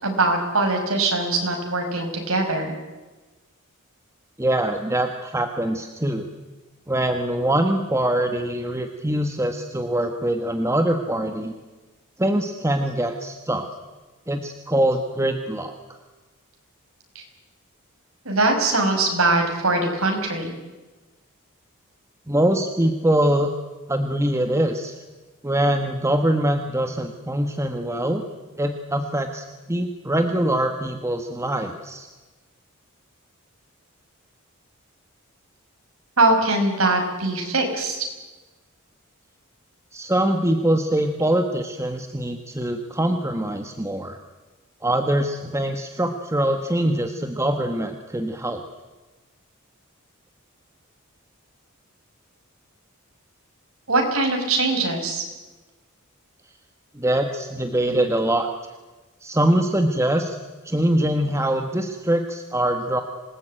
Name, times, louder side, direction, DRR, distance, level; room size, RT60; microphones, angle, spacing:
voice 1, 0.0-2.7 18.3-20.5 36.2-38.1 53.9-55.2, right 2 dB, 80° right, 3 dB, 5.7 m, -22 dB
voice 2, 4.4-6.3 6.9-11.5 12.2-13.7 14.3-15.7 22.3-23.5 23.9-24.9 25.4-28.2 28.6-32.1 39.9-44.2 44.8-48.6 56.9-58.5 59.2-60.4 60.6-63.0, right 1 dB, 15° right, 5 dB, 1.3 m, -23 dB
26.5 x 18.5 x 9.0 m, 1.2 s
head